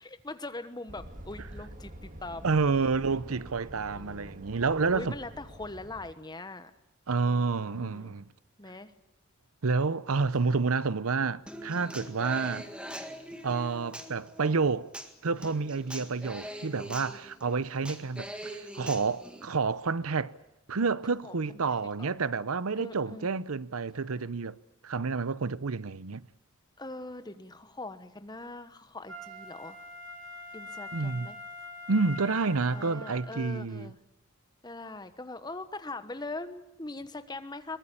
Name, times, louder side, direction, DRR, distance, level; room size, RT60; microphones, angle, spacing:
voice 1, 0.0-2.8 3.9-4.5 4.9-6.7 7.7-8.1 8.6-8.9 10.1-10.6 21.2-21.3 22.0-22.1 22.8-23.4 26.8-29.8 30.5-31.4 32.7-33.9 34.6-37.8, left 2 dB, 20° left, 1.2 m, -42 dB
sound 1, 0.9-6.1, right 1 dB, 35° right, 2.2 m, -47 dB
voice 2, 2.4-5.1 7.1-8.3 9.6-12.7 13.4-14.9 15.2-20.3 20.7-24.6 24.8-26.3 30.9-31.3 31.9-33.9, right 4 dB, 80° right, 0.8 m, -29 dB
Human voice / Acoustic guitar, 11.5-19.4, right 1 dB, 5° right, 1.8 m, -43 dB
Wind instrument woodwind instrument, 29.1-33.3 33.9-34.0, left 2 dB, 60° right, 3.1 m, -44 dB
22.5 x 20.0 x 8.6 m
head